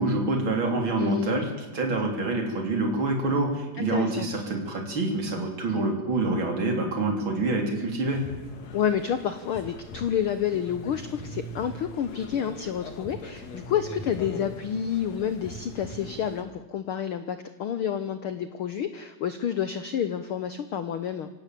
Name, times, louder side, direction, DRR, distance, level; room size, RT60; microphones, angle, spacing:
voice 1, 0.0-8.2, right 2 dB, 40° right, 2 dB, 4.1 m, -26 dB
voice 2, 1.0-1.4 3.8-4.3 8.7-21.3, left 9 dB, 85° left, 11 dB, 1.2 m, -29 dB
sound 1, 8.1-16.4, left 1 dB, 60° left, 3.2 m, -41 dB
25.0 x 17.0 x 7.7 m, 1.1 s
omnidirectional pair, 3.7 m